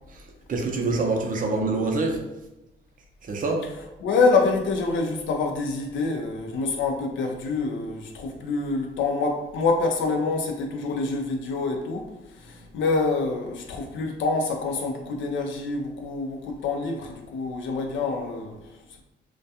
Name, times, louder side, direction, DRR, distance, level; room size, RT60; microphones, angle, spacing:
voice 1, 0.5-2.2 3.2-3.6, right 3 dB, 45° right, 2 dB, 0.5 m, -25 dB
voice 2, 4.0-12.1 12.4-18.6, left 3 dB, 75° left, 3 dB, 0.5 m, -26 dB
2.3 x 2.2 x 2.7 m, 0.99 s
cardioid pair, 90°, 20 cm